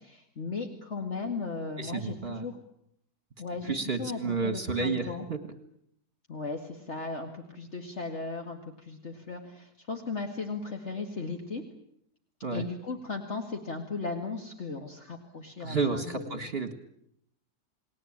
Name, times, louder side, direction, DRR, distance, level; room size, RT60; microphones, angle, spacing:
voice 1, 0.0-2.6 3.4-5.3 6.3-11.6 12.5-16.6, left 4 dB, 45° left, 3 dB, 2.3 m, -37 dB
voice 2, 1.8-2.5 3.6-5.4 12.4-12.7 15.6-16.7, right 4 dB, 40° right, 9 dB, 1.9 m, -31 dB
29.5 x 19.5 x 8.8 m, 0.74 s
omnidirectional pair, 1.6 m